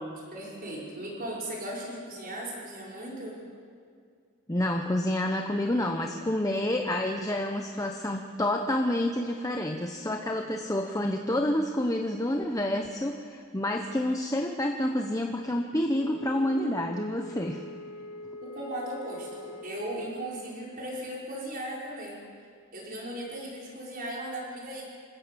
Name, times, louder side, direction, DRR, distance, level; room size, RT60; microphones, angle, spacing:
voice 1, 0.0-3.4 18.4-22.2 22.7-24.8, right 1 dB, 40° right, -4 dB, 5.9 m, -37 dB
voice 2, 4.5-17.6, left 1 dB, 15° left, 3 dB, 1.0 m, -28 dB
Wind instrument woodwind instrument, 15.9-20.0, left 1 dB, 70° left, 0.8 m, -43 dB
27.5 x 16.5 x 7.1 m, 2.2 s
head